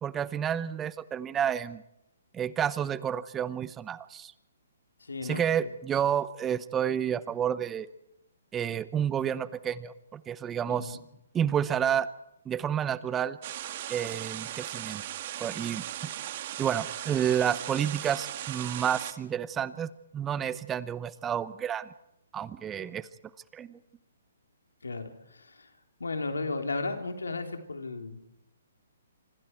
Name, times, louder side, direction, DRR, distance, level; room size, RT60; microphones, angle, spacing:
voice 1, 0.0-1.8 2.3-4.3 5.2-7.9 8.5-11.0 11.3-12.1 12.5-13.4 13.9-15.0 15.4-15.8 16.6-21.9 22.3-23.1 23.5-23.8, right 9 dB, 15° right, 16 dB, 0.9 m, -30 dB
voice 2, 5.1-5.7 10.7-11.0 24.8-25.7 26.0-28.2, left 3 dB, 90° left, 5 dB, 3.4 m, -35 dB
sound 1, 13.4-19.1, right 12 dB, 45° right, 2.1 m, -38 dB
27.0 x 25.5 x 4.6 m, 0.81 s
hypercardioid pair, 140°, 0 cm